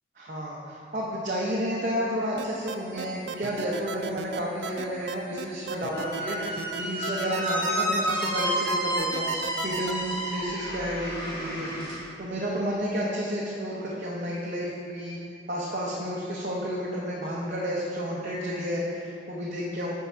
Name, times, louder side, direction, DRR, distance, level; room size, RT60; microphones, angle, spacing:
voice 1, 0.2-15.2 15.5-19.9, equal, 45° right, -5 dB, 0.7 m, -31 dB
sound 1, 2.4-9.9, right 7 dB, 70° right, 0.3 m, -35 dB
Squeak, 5.9-12.0, equal, 25° left, 1.3 m, -30 dB
7.0 x 4.6 x 4.4 m, 2.8 s
head